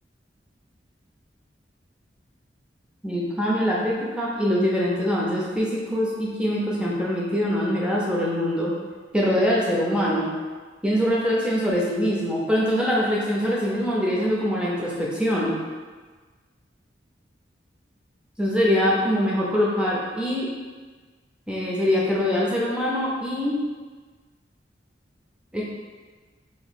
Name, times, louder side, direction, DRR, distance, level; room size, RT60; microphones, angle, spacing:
voice 1, 3.0-8.7 9.1-10.3 10.8-15.6 18.4-20.5 21.5-23.6 25.5-25.6, equal, 5° right, -5 dB, 0.6 m, -23 dB
3.0 x 2.7 x 4.2 m, 1.4 s
head